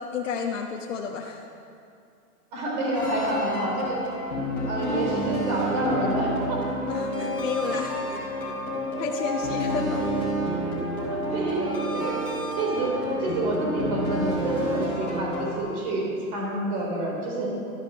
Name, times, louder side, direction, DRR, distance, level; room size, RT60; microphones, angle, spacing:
voice 1, 0.0-1.5 6.9-8.5 9.0-10.1, left 6 dB, 50° left, 1 dB, 1.1 m, -31 dB
voice 2, 2.5-4.0 4.7-6.6 9.7-10.0 10.9-12.2 12.6-12.9 13.2-16.1 16.3-17.5, right 2 dB, 25° right, -2 dB, 3.5 m, -28 dB
sound 1, 2.9-15.6, equal, 5° left, 0.7 m, -29 dB
13.0 x 13.0 x 5.2 m, 2.5 s
hypercardioid pair, 175°, 48 cm